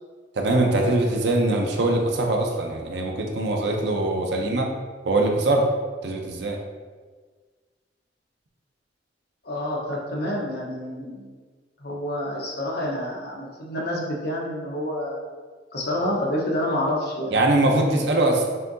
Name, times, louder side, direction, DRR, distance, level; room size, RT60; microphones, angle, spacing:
voice 1, 0.4-4.7 5.0-5.7 6.0-6.6 17.3-18.4, right 2 dB, 75° right, 2 dB, 0.6 m, -22 dB
voice 2, 9.4-11.3 11.8-15.2 15.7-17.4, left 1 dB, 60° left, -2 dB, 0.9 m, -28 dB
5.7 x 2.8 x 2.6 m, 1.5 s
head